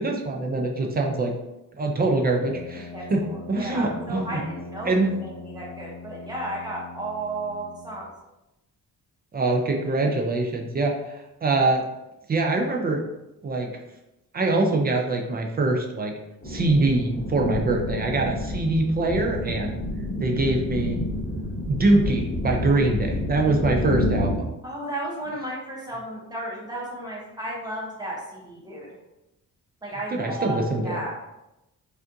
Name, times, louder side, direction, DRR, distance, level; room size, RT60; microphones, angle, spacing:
voice 1, 0.0-1.3 1.8-3.2 3.5-4.4 4.9-5.2 9.3-11.0 11.4-11.8 12.3-13.0 13.4-13.7 14.3-16.1 16.5-19.7 20.2-21.0 21.7-24.5 30.1-31.0, right 2 dB, 30° right, 1 dB, 0.4 m, -23 dB
Brass instrument, 2.2-8.1, left 3 dB, 75° right, 0.9 m, -41 dB
voice 2, 2.9-8.1 24.6-28.9 29.8-31.1, right 1 dB, 10° right, -4 dB, 0.9 m, -34 dB
sound 1, 16.4-24.4, left 1 dB, 35° left, 0.9 m, -29 dB
5.0 x 2.5 x 2.6 m, 0.93 s
cardioid pair, 160°, 34 cm